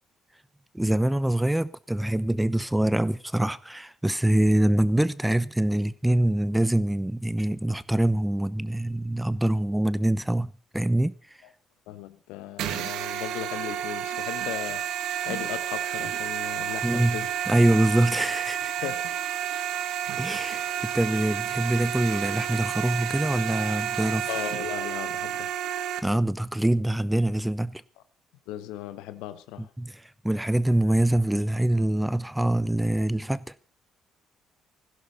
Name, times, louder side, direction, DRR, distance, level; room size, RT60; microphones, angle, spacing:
voice 1, 0.7-11.1 16.8-18.7 20.2-24.3 26.0-27.8 29.6-33.5, right 1 dB, 5° right, 0.9 m, -24 dB
voice 2, 11.9-14.8 15.2-17.3 18.8-19.1 24.3-25.5 28.5-29.7, left 13 dB, 70° left, 1.1 m, -37 dB
sound 1, 12.6-26.0, right 10 dB, 65° right, 1.5 m, -30 dB
19.5 x 16.0 x 4.2 m
figure-of-eight pair, 45°, 0 cm